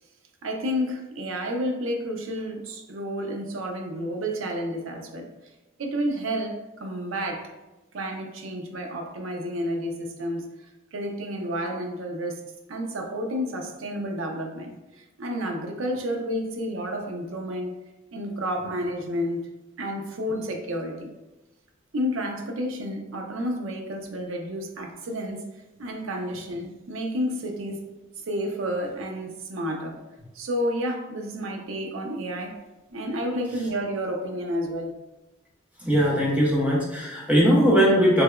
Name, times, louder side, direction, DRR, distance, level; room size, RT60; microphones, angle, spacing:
voice 1, 0.4-5.3 5.8-7.5 7.9-10.5 10.9-12.4 12.7-17.8 18.1-19.4 19.8-21.1 21.9-25.4 25.8-27.9 28.2-30.0 30.3-32.6 32.9-34.9, equal, 80° right, 3 dB, 0.5 m, -30 dB
voice 2, 35.8-38.2, equal, 5° right, -6 dB, 0.7 m, -20 dB
3.3 x 2.8 x 2.2 m, 1.0 s
head